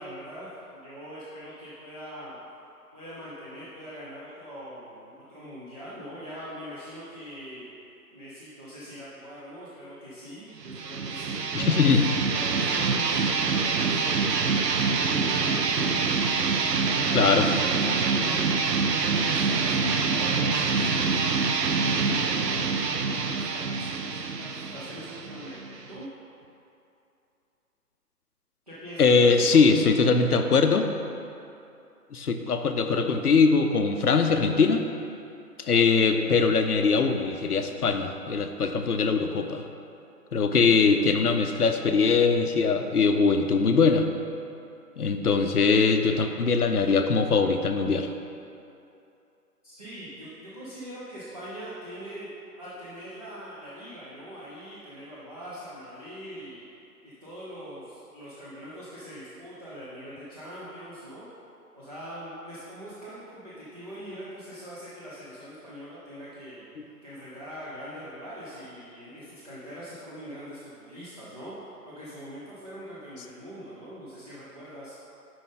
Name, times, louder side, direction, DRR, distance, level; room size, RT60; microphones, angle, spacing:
voice 1, 0.0-2.4 2.9-7.7 8.1-11.9 12.3-15.9 16.5-21.2 21.7-26.1 28.7-29.9 49.6-52.3 52.6-56.6 57.0-61.2 61.7-66.6 67.0-71.5 71.8-74.9, equal, 25° right, -10 dB, 0.7 m, -42 dB
sound 1, 10.6-26.0, right 4 dB, 80° right, 0.6 m, -26 dB
voice 2, 11.5-12.1 17.1-17.5 29.0-30.9 32.1-34.8 35.6-39.6 40.3-44.1 45.0-48.1, left 4 dB, 70° left, 6 dB, 0.7 m, -22 dB
7.0 x 5.3 x 3.8 m, 2.7 s
figure-of-eight pair, 150°, 48 cm